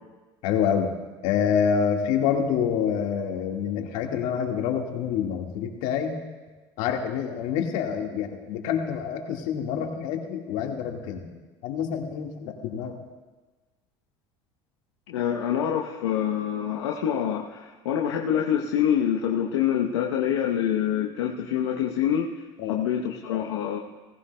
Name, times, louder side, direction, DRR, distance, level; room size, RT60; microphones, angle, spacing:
voice 1, 0.4-0.9 1.2-6.1 6.8-11.3 11.6-12.9 22.6-22.7, left 7 dB, 65° left, 3 dB, 1.7 m, -27 dB
voice 2, 15.1-23.8, left 9 dB, 80° left, 0 dB, 0.9 m, -26 dB
18.0 x 15.5 x 2.2 m, 1.3 s
hypercardioid pair, 80°, 14 cm